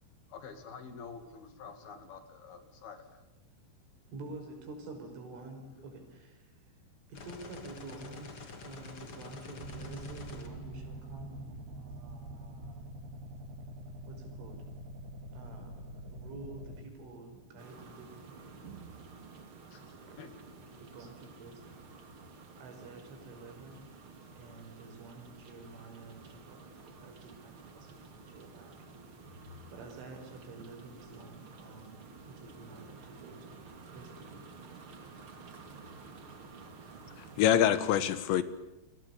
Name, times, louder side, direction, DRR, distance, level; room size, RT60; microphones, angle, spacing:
voice 1, 0.3-3.2 5.8-5.9 19.7-19.8 20.2-20.7, left 5 dB, 55° left, 4.1 m, -48 dB
voice 2, 4.1-6.5 7.1-13.0 14.1-14.6 15.3-18.7 20.0-20.2 20.8-21.8 22.6-23.8 24.4-29.0 29.7-33.6 33.8-34.7, right 2 dB, 85° right, 7.9 m, -49 dB
sound 1, 7.1-11.3, left 3 dB, 35° left, 2.5 m, -48 dB
sound 2, 9.6-16.8, right 1 dB, 55° right, 3.4 m, -45 dB
sound 3, 17.6-37.4, right 4 dB, 35° right, 2.5 m, -52 dB
voice 3, 37.2-38.4, left 10 dB, 75° left, 3.3 m, -25 dB
29.0 x 23.0 x 8.6 m
omnidirectional pair, 5.5 m